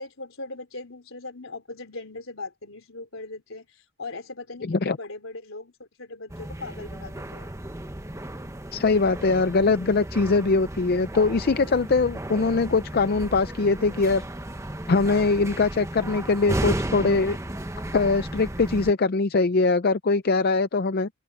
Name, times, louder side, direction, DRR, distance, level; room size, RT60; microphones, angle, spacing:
voice 1, 0.0-7.5, left 3 dB, 70° left, 3.8 m, -39 dB
sound 1, 6.3-18.9, right 1 dB, 15° right, 1.2 m, -34 dB
voice 2, 8.7-14.2 14.9-17.4 17.9-21.1, left 3 dB, 45° left, 0.5 m, -22 dB
open air
head